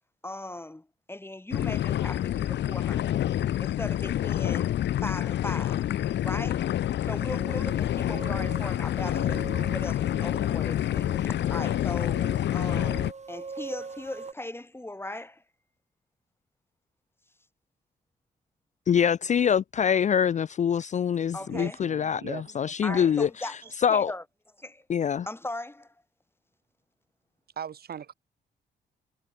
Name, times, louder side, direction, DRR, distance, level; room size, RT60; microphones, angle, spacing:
voice 1, 0.2-3.2 3.6-4.7 5.0-5.9 6.2-6.7 7.0-12.2 12.5-15.4 21.3-21.8 22.8-23.6 23.9-24.2 24.6-24.8 25.3-25.9, left 1 dB, 15° left, 1.9 m, -38 dB
sound 1, 1.5-13.1, left 12 dB, 75° left, 1.0 m, -28 dB
sound 2, 7.0-14.3, right 4 dB, 40° right, 3.4 m, -42 dB
voice 2, 18.9-23.3 23.8-24.1 24.9-25.3, left 8 dB, 40° left, 0.4 m, -24 dB
voice 3, 21.4-23.1 23.6-23.7 27.5-28.1, right 8 dB, 60° right, 1.6 m, -40 dB
cardioid pair, 65°, 18 cm